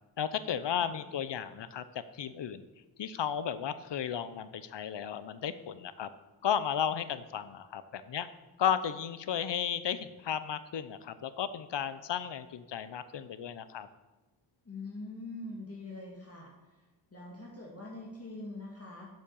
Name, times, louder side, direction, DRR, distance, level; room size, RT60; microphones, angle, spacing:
voice 1, 0.2-2.6 3.0-6.1 6.4-8.3 8.6-13.9, left 8 dB, 60° left, 13 dB, 0.8 m, -34 dB
voice 2, 14.6-16.5 17.1-19.1, left 2 dB, 30° left, -3 dB, 2.2 m, -43 dB
7.6 x 7.4 x 7.0 m, 1.1 s
cardioid pair, 70°, 48 cm